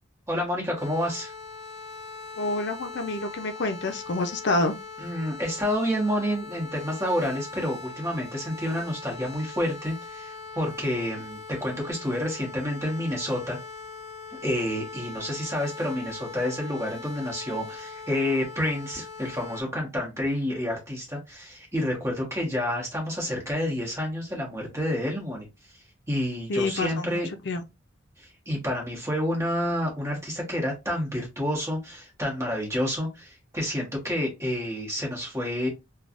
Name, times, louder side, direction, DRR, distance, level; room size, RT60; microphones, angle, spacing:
voice 1, 0.3-1.3 5.0-13.6 14.3-25.5 26.1-27.3 28.2-35.7, left 1 dB, 15° right, 1.3 m, -29 dB
sound 1, 0.8-19.6, left 4 dB, 35° left, 0.8 m, -41 dB
voice 2, 2.4-4.7 26.5-27.6, left 2 dB, 60° left, 0.5 m, -28 dB
3.3 x 2.3 x 2.5 m
head